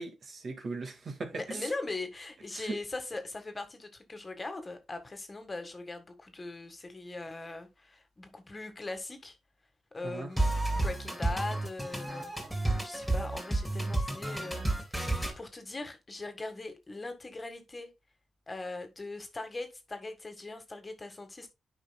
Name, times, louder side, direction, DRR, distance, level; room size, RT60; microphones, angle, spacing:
voice 1, 0.0-1.7 2.5-2.8 10.0-10.3, right 3 dB, 55° right, 1.8 m, -38 dB
voice 2, 1.3-9.4 9.9-12.3 12.8-15.0 15.4-17.9 18.5-21.5, left 2 dB, 30° left, 1.5 m, -40 dB
sound 1, 10.4-15.3, right 2 dB, 5° right, 3.3 m, -31 dB
10.0 x 5.2 x 2.2 m
cardioid pair, 75°, 0 cm